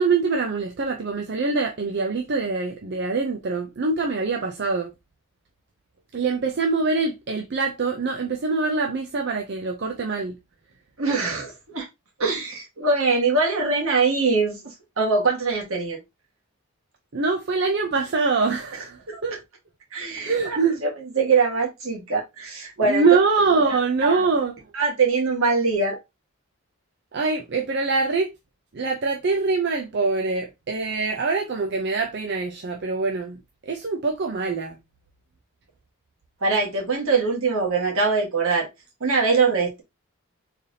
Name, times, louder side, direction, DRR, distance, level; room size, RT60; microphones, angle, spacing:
voice 1, 0.0-4.9 6.1-10.4 17.1-19.3 20.2-20.8 22.8-24.5 27.1-28.3 28.7-34.8, right 4 dB, 50° right, 0.5 m, -24 dB
voice 2, 11.0-11.9 12.2-14.6 15.0-16.0 19.1-19.2 19.9-23.1 23.6-24.2 24.7-26.0 36.4-38.7 39.0-39.8, right 4 dB, 70° right, 1.5 m, -23 dB
4.0 x 3.3 x 2.7 m
head